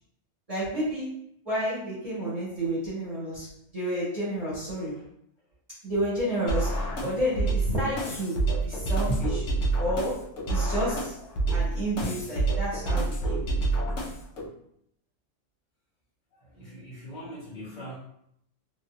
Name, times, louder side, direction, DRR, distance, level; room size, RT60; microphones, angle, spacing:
voice 1, 0.5-1.1 1.4-5.0 5.8-9.4 9.8-11.1 11.5-13.4, right 1 dB, 30° right, -10 dB, 1.3 m, -30 dB
sound 1, 6.5-14.5, right 3 dB, 80° left, 1.0 m, -28 dB
voice 2, 16.4-18.0, equal, 40° left, -6 dB, 1.2 m, -42 dB
3.0 x 2.7 x 2.4 m, 0.72 s
omnidirectional pair, 1.3 m